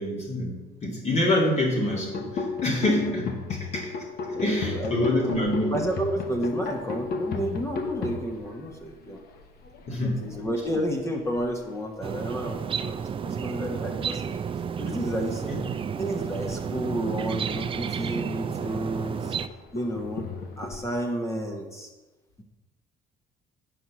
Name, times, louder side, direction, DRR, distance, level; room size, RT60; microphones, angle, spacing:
voice 1, 0.0-3.9 4.3-5.8 9.9-10.2 15.5-15.6, left 1 dB, 40° left, -3 dB, 2.2 m, -26 dB
sound 1, 1.9-13.3 13.6-14.0 14.3-20.9, left 4 dB, 65° left, 1.2 m, -36 dB
voice 2, 4.2-5.3 5.7-9.2 9.9-14.4 14.8-15.6 16.0-19.4 19.7-20.3 20.6-21.9, equal, 15° left, 2 dB, 1.2 m, -31 dB
sound 2, 12.0-19.5, right 7 dB, 30° right, 0.4 m, -31 dB
9.2 x 4.7 x 7.0 m, 1.2 s
cardioid pair, 110°, 17 cm